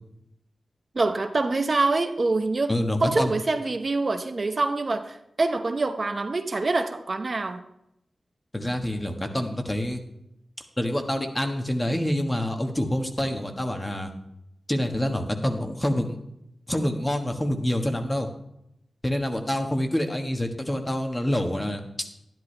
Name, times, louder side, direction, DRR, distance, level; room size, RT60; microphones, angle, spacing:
voice 1, 0.9-2.7 3.0-7.6, right 3 dB, 50° right, 7 dB, 0.8 m, -25 dB
voice 2, 2.7-3.3 8.5-10.0 10.8-14.1 14.7-16.2 16.7-18.3 19.0-22.1, left 1 dB, 20° left, 4 dB, 1.3 m, -27 dB
11.5 x 10.5 x 3.3 m, 0.81 s
wide cardioid pair, 70°, 0 cm